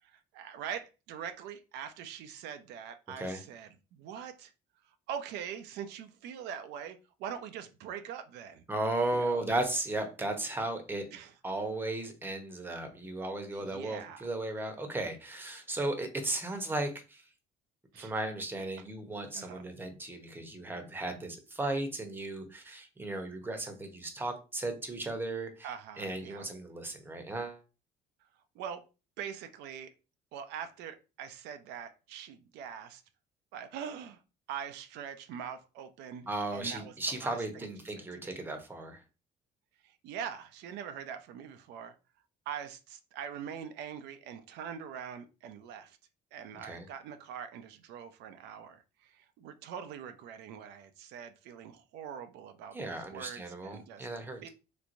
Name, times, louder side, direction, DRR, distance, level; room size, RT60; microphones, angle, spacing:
voice 1, 0.1-4.5 4.8-8.6 9.1-9.5 11.1-11.3 13.5-14.3 17.9-18.1 19.3-19.7 25.6-26.5 28.5-28.8 29.2-29.9 30.3-33.0 33.5-34.2 34.5-37.7 38.0-38.4 39.8-41.9 42.5-46.0 46.3-54.1 54.4-54.5, right 8 dB, 85° right, 9 dB, 0.5 m, -43 dB
voice 2, 8.7-11.1 11.4-17.2 18.0-25.7 26.0-27.6 36.3-39.0 46.6-46.9 52.7-54.5, right 2 dB, 10° right, 5 dB, 0.8 m, -35 dB
3.3 x 3.1 x 2.6 m, 0.31 s
cardioid pair, 110°, 17 cm